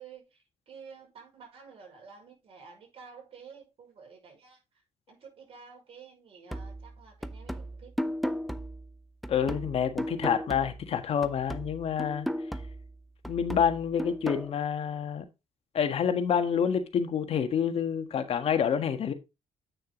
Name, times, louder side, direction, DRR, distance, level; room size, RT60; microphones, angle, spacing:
voice 1, 0.0-4.6 5.1-7.9 14.6-14.8, right 6 dB, 55° right, 5.5 m, -51 dB
sound 1, 6.5-10.9 11.2-14.5, equal, ahead, 0.8 m, -36 dB
voice 2, 9.3-12.3 13.3-15.2 15.7-19.1, left 7 dB, 60° left, 1.5 m, -28 dB
8.9 x 6.5 x 3.9 m
cardioid pair, 75°, 11 cm